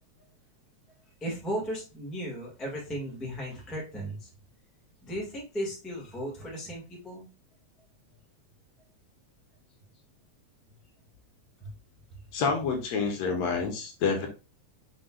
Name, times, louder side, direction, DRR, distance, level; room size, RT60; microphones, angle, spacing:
voice 1, 1.1-4.3 5.0-7.3 11.6-11.7 13.6-13.7, equal, ahead, -3 dB, 0.8 m, -36 dB
voice 2, 12.3-14.3, left 5 dB, 70° left, 3 dB, 1.9 m, -28 dB
5.5 x 3.9 x 2.3 m, 0.31 s
omnidirectional pair, 3.4 m